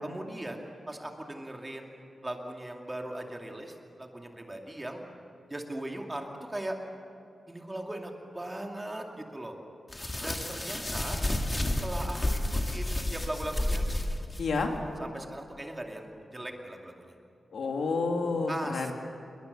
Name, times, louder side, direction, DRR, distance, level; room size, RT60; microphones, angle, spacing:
voice 1, 0.0-5.0 5.5-6.8 7.5-9.5 10.2-11.2 11.6-13.9 15.0-17.1 18.5-18.9, right 1 dB, 15° right, 2 dB, 2.4 m, -39 dB
sound 1, 9.9-14.7, left 1 dB, 20° left, 2.0 m, -31 dB
voice 2, 14.4-14.7 17.5-18.9, left 4 dB, 80° left, 2 dB, 2.6 m, -29 dB
27.5 x 22.5 x 6.7 m, 2.5 s
wide cardioid pair, 125°, 0 cm